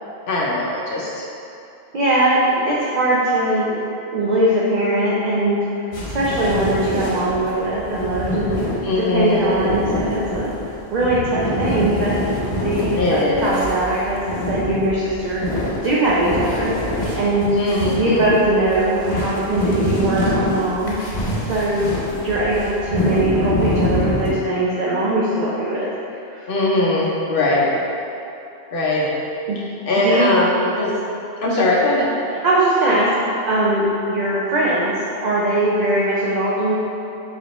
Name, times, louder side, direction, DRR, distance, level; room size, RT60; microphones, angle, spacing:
voice 1, 0.3-1.2 8.8-9.7 13.0-13.6 17.6-18.2 26.5-27.7 28.7-29.1 29.9-30.9 31.4-32.1, left 2 dB, 60° left, -5 dB, 0.8 m, -20 dB
voice 2, 1.9-3.8 4.1-5.6 6.1-8.7 9.1-10.5 10.9-17.6 17.8-21.2 21.5-26.5 29.5-29.6 30.0-30.3 32.4-33.1 33.5-34.9 35.2-36.8, right 1 dB, 55° right, -7 dB, 0.5 m, -21 dB
sound 1, 5.9-24.3, left 1 dB, 90° left, 1.2 m, -25 dB
4.1 x 3.1 x 2.9 m, 2.8 s
omnidirectional pair, 1.1 m